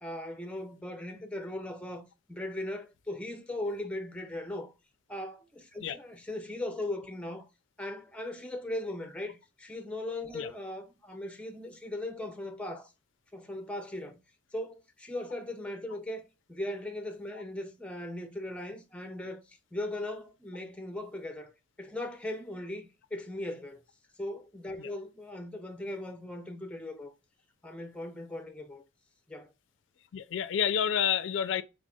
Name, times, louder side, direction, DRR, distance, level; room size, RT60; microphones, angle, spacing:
voice 1, 0.0-4.7 5.1-7.5 7.8-12.9 13.3-14.2 14.5-16.2 16.5-21.5 21.8-23.8 24.2-27.1 27.6-28.8 29.3-29.5, left 1 dB, 5° left, 0.5 m, -38 dB
voice 2, 30.1-31.6, left 8 dB, 70° left, 0.3 m, -29 dB
4.0 x 3.2 x 2.2 m
head